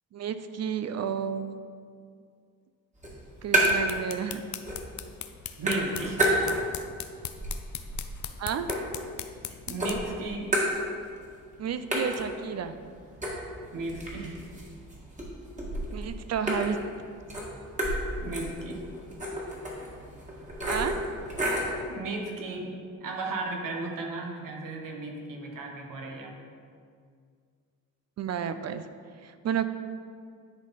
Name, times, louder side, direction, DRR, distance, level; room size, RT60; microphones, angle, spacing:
voice 1, 0.1-1.5 3.4-4.4 8.4-8.7 11.6-12.8 15.9-16.8 20.7-21.0 28.2-28.8 29.2-29.7, right 8 dB, 50° right, 10 dB, 0.5 m, -31 dB
sound 1, 3.0-4.0 4.3-5.0 5.3-6.9 7.3-9.4 9.8-11.2 11.5-11.6 11.9-21.8, right 1 dB, 20° right, 1.8 m, -31 dB
sound 2, 3.4-10.1, left 10 dB, 60° left, 0.5 m, -40 dB
voice 2, 5.6-6.3 9.5-10.5 13.7-14.4 18.2-18.8 21.9-22.7 23.0-26.4, right 3 dB, 70° right, 1 dB, 1.2 m, -35 dB
10.5 x 4.1 x 4.1 m, 2.2 s
cardioid pair, 105°, 34 cm